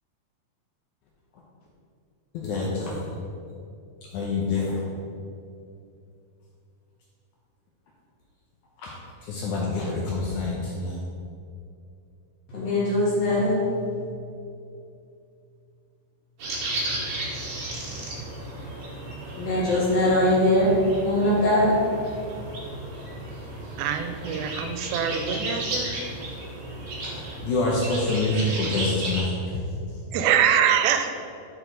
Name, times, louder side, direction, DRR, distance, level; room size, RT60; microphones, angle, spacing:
voice 1, 2.3-3.0 4.1-4.8 8.8-8.9 9.2-11.0 27.0-29.6, left 2 dB, 75° left, -3 dB, 1.8 m, -27 dB
voice 2, 12.5-13.9 19.4-20.7 21.0-21.7, left 1 dB, 55° left, -6 dB, 1.9 m, -21 dB
sound 1, 16.4-29.2, right 1 dB, 55° right, 2.2 m, -34 dB
voice 3, 23.8-25.9 30.1-31.1, right 8 dB, 90° right, 7 dB, 2.4 m, -23 dB
6.5 x 6.5 x 3.8 m, 2.5 s
omnidirectional pair, 4.1 m